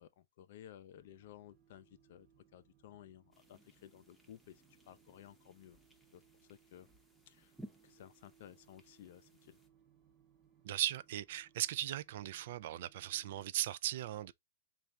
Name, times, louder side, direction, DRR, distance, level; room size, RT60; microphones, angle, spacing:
voice 1, 0.0-2.3 2.5-5.8 6.1-6.2 6.5-6.9 7.3-7.5 7.8-9.6, left 11 dB, 60° left, 0.4 m, -56 dB
sound 1, 1.0-13.5, right 8 dB, 30° right, 0.9 m, -69 dB
sound 2, 3.3-9.7, equal, ahead, 0.7 m, -60 dB
voice 2, 10.6-14.3, right 13 dB, 60° right, 0.3 m, -38 dB
3.3 x 2.4 x 4.0 m
hypercardioid pair, 130°, 0 cm